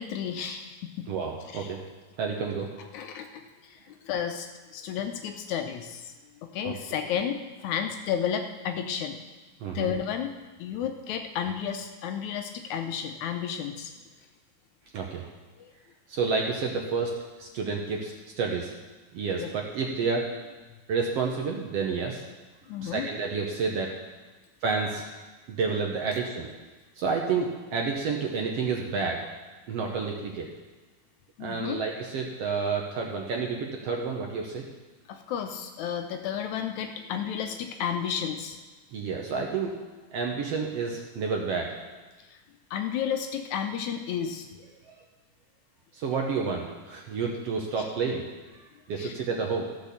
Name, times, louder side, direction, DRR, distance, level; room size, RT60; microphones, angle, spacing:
voice 1, 0.0-1.1 1.5-1.8 2.9-9.2 9.7-13.9 15.6-15.7 19.4-19.5 22.7-23.1 26.1-26.2 31.4-31.8 35.1-38.6 42.2-42.4 42.7-44.5 47.8-47.9 49.0-49.1, left 8 dB, 75° left, 6 dB, 1.9 m, -32 dB
voice 2, 1.1-1.8 2.2-2.7 6.6-6.7 9.6-9.9 14.9-15.3 16.1-18.7 19.1-20.3 20.9-22.2 22.8-23.9 24.6-25.1 25.5-26.5 27.0-29.2 29.7-30.5 31.4-34.7 38.9-39.8 40.1-41.7 44.9-45.0 45.9-48.2 48.9-49.7, right 5 dB, 65° right, 0 dB, 1.6 m, -30 dB
13.5 x 6.2 x 6.8 m, 1.2 s
omnidirectional pair, 3.7 m